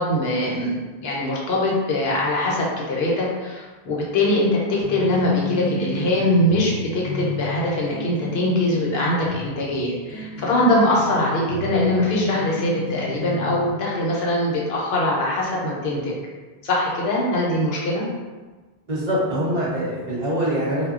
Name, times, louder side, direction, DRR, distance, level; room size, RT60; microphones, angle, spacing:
voice 1, 0.0-16.1 16.6-18.1, left 1 dB, 70° left, -4 dB, 0.9 m, -22 dB
sound 1, 4.8-13.7, left 2 dB, 75° right, 0.8 m, -33 dB
voice 2, 18.9-20.9, equal, 50° right, -7 dB, 0.7 m, -24 dB
2.2 x 2.1 x 3.5 m, 1.3 s
omnidirectional pair, 1.1 m